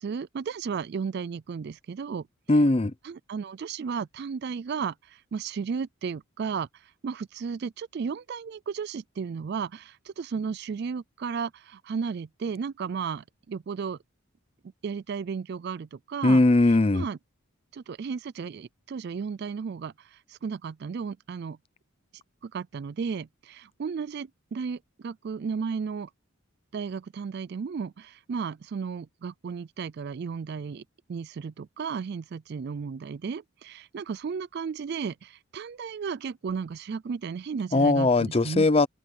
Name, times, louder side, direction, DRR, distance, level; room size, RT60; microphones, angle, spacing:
voice 1, 0.0-2.2 3.0-4.9 5.3-6.7 7.0-14.0 14.8-16.4 16.9-17.2 17.7-19.9 20.4-21.6 22.4-26.1 26.7-30.8 31.1-38.7, right 6 dB, 50° right, 0.3 m, -34 dB
voice 2, 2.5-2.9 16.2-17.0 37.7-38.9, left 2 dB, 25° left, 0.6 m, -20 dB
open air
head